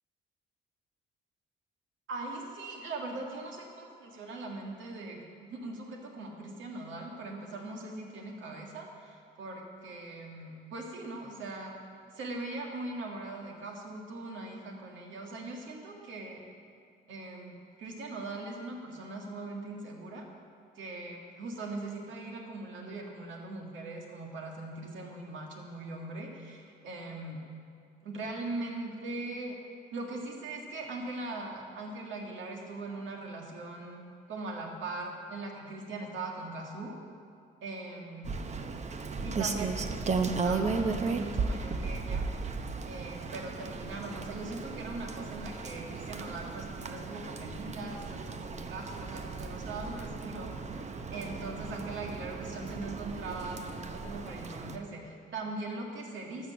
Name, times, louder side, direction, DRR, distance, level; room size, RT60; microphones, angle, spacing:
voice 1, 2.1-11.7 12.1-16.4 17.1-20.3 20.8-27.4 28.0-29.6 29.9-34.0 34.3-37.0 37.6-38.4 39.2-42.3 42.8-56.5, right 2 dB, 75° right, 0 dB, 1.9 m, -40 dB
Rain, 38.2-54.8, right 4 dB, 35° right, 0.7 m, -35 dB
13.0 x 6.3 x 7.0 m, 2.3 s
cardioid pair, 90°, 20 cm